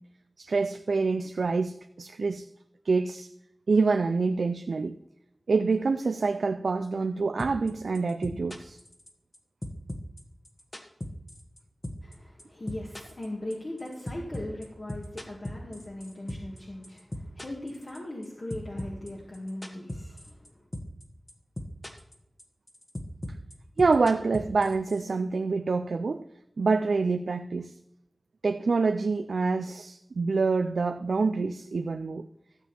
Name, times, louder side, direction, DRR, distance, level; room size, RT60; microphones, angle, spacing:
voice 1, 0.4-2.5 2.8-3.3 3.7-5.0 5.5-8.8 23.8-26.2 26.6-27.7 28.4-32.3, right 4 dB, 90° right, 0.4 m, -26 dB
sound 1, 7.4-7.7 7.9-9.4 9.6-11.6 11.8-12.1 12.4-16.6 16.8-18.2 18.5-20.5 20.7-21.0 21.3-22.1 22.4-25.0, left 1 dB, 35° left, 1.5 m, -37 dB
voice 2, 12.0-20.7, left 1 dB, 55° left, 2.2 m, -39 dB
13.5 x 7.1 x 4.4 m
wide cardioid pair, 60°, 0 cm